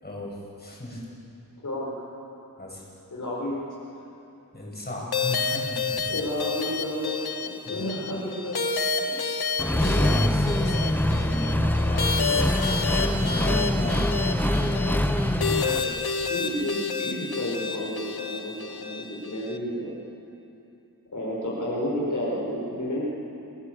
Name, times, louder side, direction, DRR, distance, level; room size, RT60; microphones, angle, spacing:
voice 1, 0.0-1.1 2.6-2.8 4.5-6.0 7.6-7.8 9.0-14.7, left 1 dB, 25° left, -4 dB, 8.0 m, -36 dB
voice 2, 3.1-3.6 6.1-8.6 9.0-10.1 15.6-16.7 17.0-19.9 21.1-23.0, equal, 55° left, -5 dB, 5.5 m, -31 dB
sound 1, 5.1-19.6, left 4 dB, 80° left, 1.5 m, -30 dB
Accelerating revving vroom, 9.6-15.8, left 1 dB, 5° left, 1.0 m, -24 dB
29.5 x 20.0 x 8.2 m, 2.8 s
wide cardioid pair, 90°, 37 cm